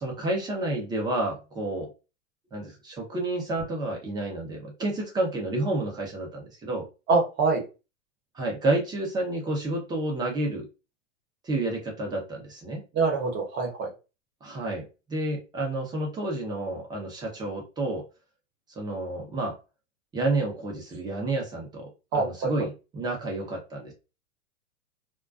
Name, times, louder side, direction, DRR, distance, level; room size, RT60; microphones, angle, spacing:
voice 1, 0.0-1.9 2.5-6.9 8.3-10.7 11.4-12.8 14.4-18.0 18.8-19.6 20.1-23.9, right 2 dB, 10° right, 0 dB, 0.5 m, -30 dB
voice 2, 7.1-7.6 12.9-13.9 22.1-22.5, right 4 dB, 30° right, 1 dB, 0.9 m, -24 dB
2.4 x 2.2 x 2.3 m, 0.30 s
hypercardioid pair, 135°, 39 cm